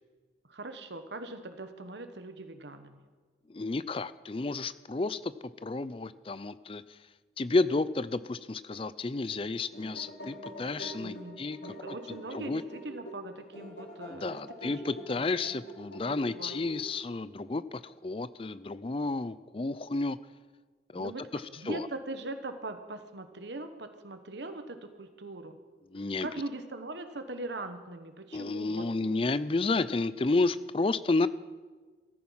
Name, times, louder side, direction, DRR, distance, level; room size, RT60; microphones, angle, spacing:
voice 1, 0.4-3.0 11.0-14.8 15.2-15.3 16.1-16.6 20.9-25.6 26.2-28.9, right 2 dB, 75° right, 8 dB, 1.1 m, -41 dB
voice 2, 3.5-5.3 5.6-6.8 7.4-11.7 12.3-12.6 14.1-20.2 20.9-21.9 25.9-26.3 28.3-31.3, left 3 dB, 30° left, 15 dB, 0.4 m, -31 dB
sound 1, 9.5-17.1, equal, 75° left, 3.8 m, -45 dB
15.0 x 14.0 x 5.7 m, 1.4 s
head